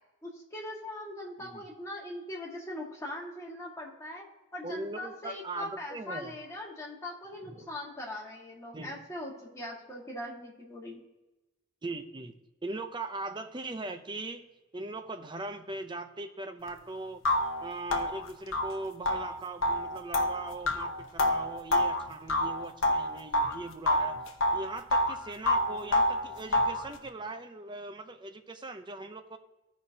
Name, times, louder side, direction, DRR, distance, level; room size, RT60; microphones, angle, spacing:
voice 1, 0.2-4.3 4.5-11.0, left 1 dB, 15° left, -3 dB, 1.7 m, -41 dB
voice 2, 4.6-6.4 7.5-7.7 8.7-8.9 11.8-12.3 12.6-14.5 14.7-17.2 17.6-24.2 24.5-29.4, right 2 dB, 25° right, 7 dB, 0.6 m, -40 dB
sound 1, 16.7-16.8 17.2-23.6 23.9-25.2 25.5-26.9, left 1 dB, 90° left, 0.9 m, -28 dB
15.0 x 5.2 x 2.8 m, 1.0 s
head